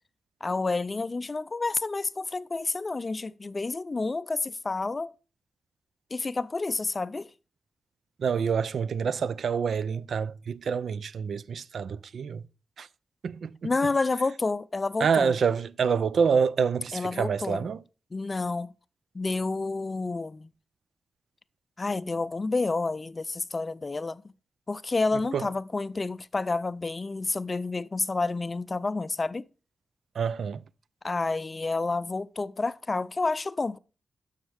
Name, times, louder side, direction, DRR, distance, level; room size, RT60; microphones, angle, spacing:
voice 1, 0.4-5.1 6.1-7.3 13.6-15.3 16.9-17.7 18.1-18.7 19.1-20.5 21.8-24.2 24.7-29.5 31.0-33.8, left 3 dB, 30° left, 0.4 m, -29 dB
voice 2, 8.2-12.4 12.8-12.9 13.2-13.7 15.0-17.8 25.3-25.5 30.1-30.6, right 6 dB, 75° right, 0.4 m, -27 dB
12.0 x 6.5 x 3.4 m
wide cardioid pair, 105°, 0 cm